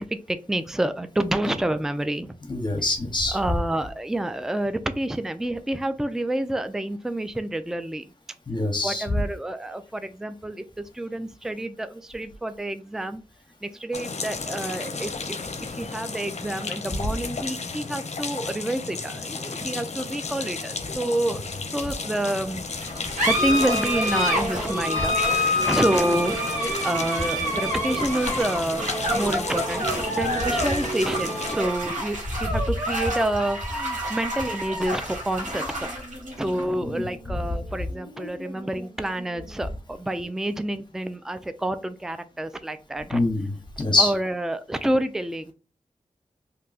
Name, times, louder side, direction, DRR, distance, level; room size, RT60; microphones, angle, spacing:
voice 1, 0.0-2.4 3.3-8.1 8.8-13.2 13.6-15.4 15.7-22.6 23.3-26.5 26.8-35.9 36.4-43.2 43.8-45.5, right 1 dB, 5° right, 10 dB, 0.4 m, -28 dB
voice 2, 2.5-3.4 8.5-9.0 30.2-30.8 36.9-37.1 43.1-44.1, left 2 dB, 35° left, 3 dB, 0.9 m, -25 dB
sound 1, 13.9-31.5, left 4 dB, 60° left, 0.6 m, -34 dB
sound 2, 22.7-39.7, equal, 85° right, 1.3 m, -28 dB
sound 3, 23.1-28.4 28.7-31.7, right 2 dB, 60° right, 1.3 m, -34 dB
2.7 x 2.2 x 3.9 m, 0.33 s
cardioid pair, 40°, 13 cm